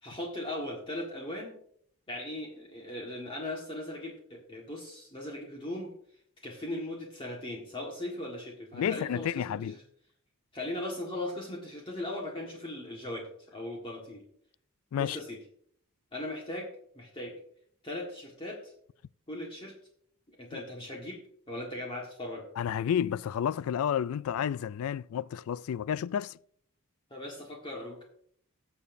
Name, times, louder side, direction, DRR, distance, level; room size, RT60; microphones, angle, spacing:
voice 1, 0.0-1.6 2.1-5.9 6.4-9.8 10.5-14.2 15.0-15.4 16.1-16.7 16.9-17.3 17.8-18.7 19.3-19.7 20.3-21.2 21.5-22.5 27.1-28.0, left 1 dB, 25° left, 1.6 m, -38 dB
voice 2, 8.7-9.8 14.9-15.2 20.5-20.6 22.6-26.4, left 9 dB, 80° left, 0.3 m, -31 dB
19.0 x 7.0 x 2.7 m
head